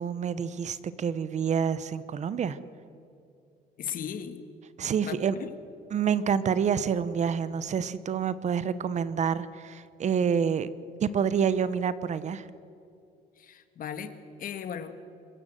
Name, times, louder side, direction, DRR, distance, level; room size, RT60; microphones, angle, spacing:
voice 1, 0.0-2.6 4.8-5.3 5.9-10.7 11.0-12.5, right 7 dB, 45° right, 15 dB, 0.9 m, -28 dB
voice 2, 3.8-4.4 5.0-5.5 13.4-14.1 14.4-14.9, left 8 dB, 55° left, 10 dB, 1.7 m, -37 dB
26.0 x 14.5 x 7.9 m, 2.6 s
cardioid pair, 110°, 17 cm